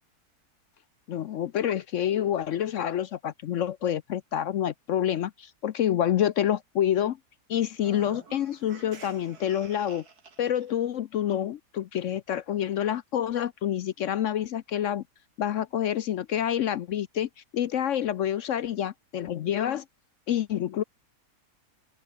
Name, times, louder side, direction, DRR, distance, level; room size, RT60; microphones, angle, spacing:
voice 1, 1.1-7.2 7.5-10.0 10.4-15.0 15.4-19.8 20.3-20.8, left 10 dB, 65° left, 0.8 m, -28 dB
sound 1, 7.7-10.7, right 4 dB, 70° right, 3.1 m, -48 dB
omnidirectional pair, 1.7 m